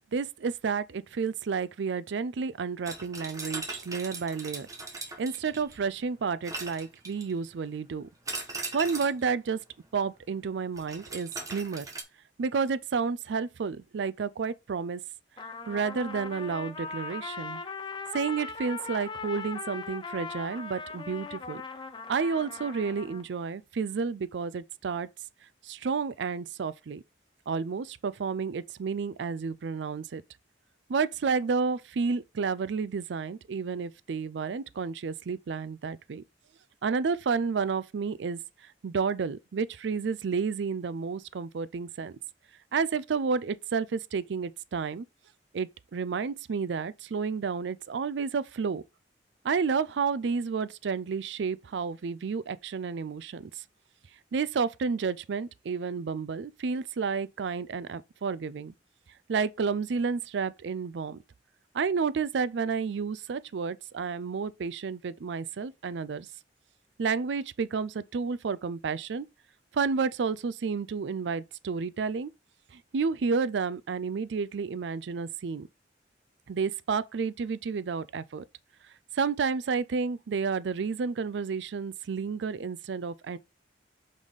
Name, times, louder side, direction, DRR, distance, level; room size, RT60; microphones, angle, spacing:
voice 1, 0.1-4.7 5.2-8.1 8.7-9.6 9.9-11.9 12.4-15.0 15.7-17.6 18.1-21.6 22.1-25.1 25.6-27.0 27.5-30.2 30.9-36.2 36.8-38.4 38.8-42.1 42.7-45.0 45.5-48.8 49.4-53.5 54.3-58.7 59.3-61.2 61.7-66.3 67.0-69.3 69.7-72.3 72.9-75.7 76.5-78.4 79.1-83.4, right 5 dB, 75° right, 0.4 m, -31 dB
sound 1, 2.8-5.8 6.4-7.4 8.3-9.2 10.8-12.0, right 3 dB, 20° right, 1.1 m, -39 dB
Trumpet, 15.4-23.2, left 4 dB, 25° left, 0.6 m, -39 dB
5.4 x 4.9 x 4.0 m
head